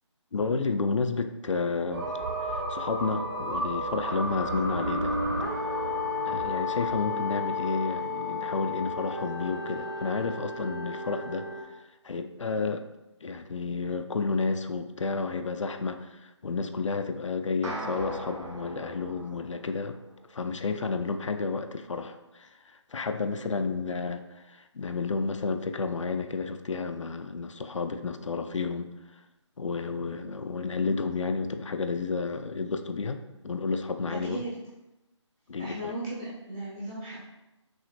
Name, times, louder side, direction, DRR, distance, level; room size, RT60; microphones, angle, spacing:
voice 1, 0.3-2.1 2.5-5.2 6.3-11.7 12.0-12.8 13.2-19.9 20.3-29.2 29.6-33.2 33.4-34.4 35.5-36.0, left 4 dB, 75° left, 7 dB, 0.4 m, -31 dB
sound 1, 1.9-11.6, left 1 dB, 45° right, 0.9 m, -32 dB
sound 2, 17.6-20.1, right 1 dB, 70° right, 0.9 m, -39 dB
voice 2, 34.1-34.5 35.6-37.2, right 1 dB, 5° right, -8 dB, 0.4 m, -36 dB
6.1 x 2.5 x 2.5 m, 0.97 s
figure-of-eight pair, 155°, 16 cm